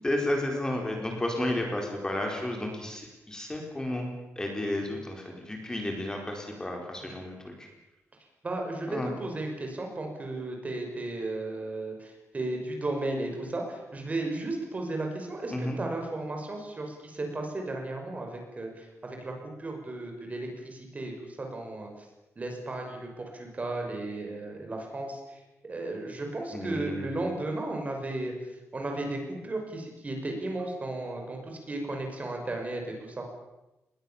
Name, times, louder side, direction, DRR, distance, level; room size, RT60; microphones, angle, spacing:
voice 1, 0.0-4.1 4.4-7.7 8.9-9.1 15.5-15.8 26.5-27.3, left 1 dB, 15° left, 1 dB, 4.5 m, -32 dB
voice 2, 8.4-19.3 19.6-21.9 22.4-25.4 25.7-28.3 28.7-33.2, right 2 dB, 30° right, 2 dB, 6.0 m, -34 dB
28.0 x 21.5 x 7.3 m, 0.98 s
wide cardioid pair, 155°, 5 cm